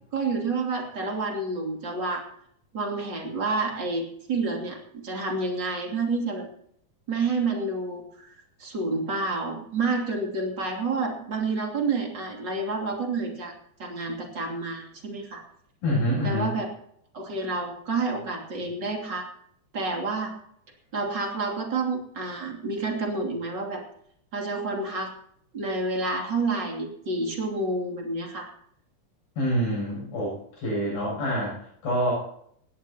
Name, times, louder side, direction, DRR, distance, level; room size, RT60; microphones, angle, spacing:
voice 1, 0.1-2.2 2.7-6.5 7.1-8.3 8.6-13.5 13.8-15.4 16.2-16.7 17.1-19.3 19.7-20.3 20.9-23.8 24.3-25.1 25.5-28.5, right 3 dB, 30° right, 1 dB, 3.1 m, -29 dB
voice 2, 15.8-16.5 29.4-31.6 31.8-32.1, equal, 75° left, -5 dB, 10.0 m, -26 dB
20.0 x 16.5 x 2.9 m, 0.67 s
omnidirectional pair, 4.4 m